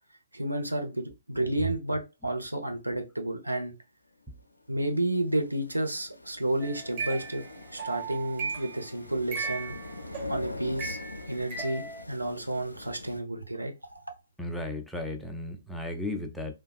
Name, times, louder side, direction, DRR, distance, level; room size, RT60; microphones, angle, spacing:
voice 1, 0.3-3.7 4.7-7.4 7.7-9.7 10.3-11.0 11.3-14.0, right 1 dB, 85° right, 0.8 m, -31 dB
sound 1, 4.3-13.2, left 2 dB, 85° left, 0.4 m, -45 dB
sound 2, 6.6-8.8 9.3-12.0, right 4 dB, 25° right, 1.0 m, -37 dB
voice 2, 14.4-16.5, left 1 dB, ahead, 0.4 m, -35 dB
3.3 x 2.3 x 2.3 m
figure-of-eight pair, 130°, 0 cm